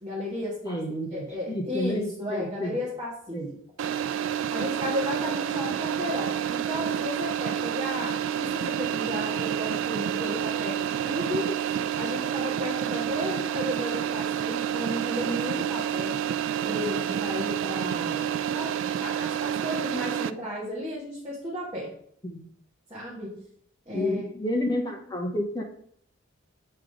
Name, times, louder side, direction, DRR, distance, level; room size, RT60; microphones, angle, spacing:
voice 1, 0.0-0.8 1.1-3.4 4.5-10.8 11.0-16.2 16.6-18.2 18.5-21.9 22.9-23.4 23.9-24.2, left 1 dB, 25° right, -8 dB, 1.7 m, -34 dB
voice 2, 0.6-2.8 3.3-3.5 22.2-22.5 23.9-25.6, left 1 dB, 20° left, 2 dB, 0.8 m, -30 dB
sound 1, 3.8-20.3, right 9 dB, 65° right, 0.3 m, -29 dB
7.7 x 3.8 x 4.9 m, 0.65 s
head